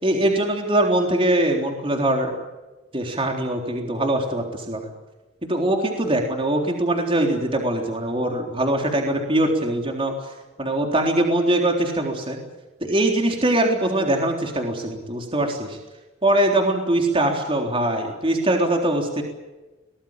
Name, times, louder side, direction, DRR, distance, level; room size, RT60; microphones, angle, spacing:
voice 1, 0.0-2.4 2.9-4.9 5.4-10.3 10.6-12.4 12.8-15.8 16.2-19.2, right 1 dB, 30° right, 2 dB, 3.7 m, -22 dB
25.0 x 19.0 x 9.0 m, 1.1 s
head